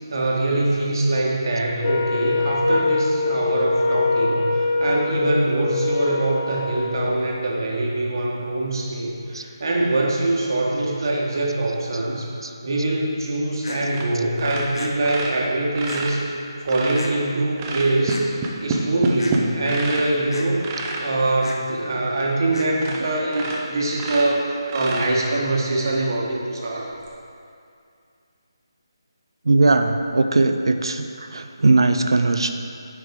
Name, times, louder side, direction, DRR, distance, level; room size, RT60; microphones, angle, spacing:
voice 1, 0.0-12.3 12.6-16.2 16.6-18.2 18.6-20.6 21.0-26.9, right 2 dB, 55° right, -3 dB, 1.3 m, -23 dB
Wind instrument woodwind instrument, 1.8-7.1, left 3 dB, 35° left, 0.5 m, -23 dB
sound 1, 13.6-13.8 14.7-14.9 15.9-16.0 17.0-17.1 18.1-18.2 19.2-19.4 20.3-20.5 21.4-21.6 22.5-22.7, left 2 dB, 70° left, 0.9 m, -35 dB
sound 2, 13.9-14.1 14.4-17.1 17.6-20.1 20.6-21.1 21.7-21.8 22.2-22.3 22.7-23.0 23.3-25.4 27.0-27.1, right 3 dB, 20° right, 0.6 m, -28 dB
voice 2, 29.5-32.5, right 3 dB, 70° right, 7 dB, 0.5 m, -19 dB
9.3 x 4.8 x 3.7 m, 2.4 s
figure-of-eight pair, 155°, 3 cm